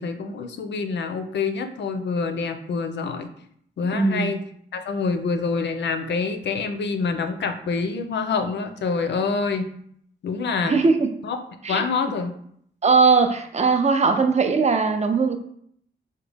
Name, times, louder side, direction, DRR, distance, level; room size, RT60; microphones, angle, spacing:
voice 1, 0.0-3.3 3.8-4.4 4.7-9.7 10.2-10.8 11.2-11.4 11.7-12.3, left 4 dB, 70° left, 8 dB, 0.5 m, -26 dB
voice 2, 3.9-4.3 10.6-11.1 11.6-11.8 12.8-15.4, right 4 dB, 35° right, 7 dB, 0.5 m, -19 dB
3.7 x 2.2 x 3.4 m, 0.67 s
cardioid pair, 70°, 19 cm